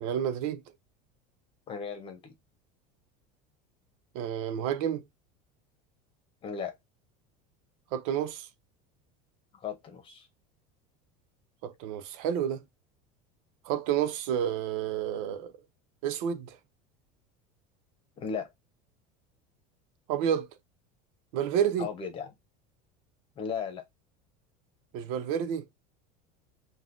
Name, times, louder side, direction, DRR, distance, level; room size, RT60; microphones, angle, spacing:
voice 1, 0.0-0.6 4.1-5.0 7.9-8.5 11.6-12.6 13.6-15.5 16.0-16.6 20.1-20.5 21.3-21.9 24.9-25.6, right 9 dB, 60° right, 0.7 m, -30 dB
voice 2, 1.7-2.3 6.4-6.8 9.5-10.3 18.2-18.5 21.8-22.3 23.4-23.8, left 6 dB, 25° left, 1.0 m, -36 dB
4.0 x 2.5 x 3.7 m
cardioid pair, 160°, 20 cm